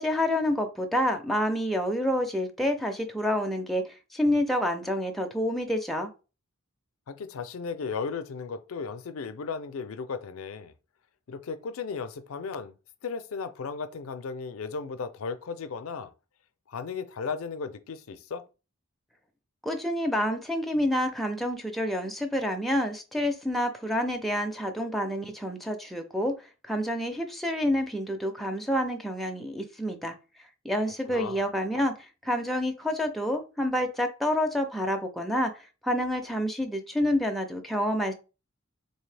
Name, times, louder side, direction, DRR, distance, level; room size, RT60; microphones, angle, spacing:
voice 1, 0.0-3.8 4.1-6.1 19.6-26.3 26.7-30.1 30.6-31.9 32.2-38.1, equal, ahead, 0.4 m, -28 dB
voice 2, 7.1-10.7 11.3-12.7 13.0-16.1 16.7-18.4 31.1-31.5, left 5 dB, 80° left, 0.4 m, -35 dB
3.9 x 2.7 x 3.3 m
head